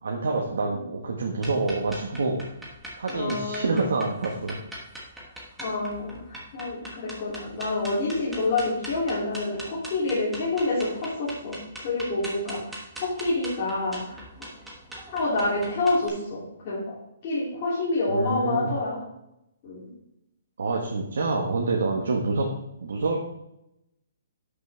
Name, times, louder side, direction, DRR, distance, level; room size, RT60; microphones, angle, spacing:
voice 1, 0.0-2.4 3.0-4.6 18.1-18.7 20.6-22.5 22.8-23.3, right 3 dB, 80° right, -1 dB, 1.5 m, -27 dB
sound 1, 1.4-16.1, right 1 dB, 5° right, 1.2 m, -41 dB
voice 2, 3.1-3.8 5.6-11.6 11.8-12.6 13.0-14.2 15.1-16.9 17.2-19.0 19.6-19.9, left 2 dB, 30° left, -9 dB, 2.9 m, -27 dB
11.0 x 6.2 x 3.4 m, 0.84 s
hypercardioid pair, 175°, 0 cm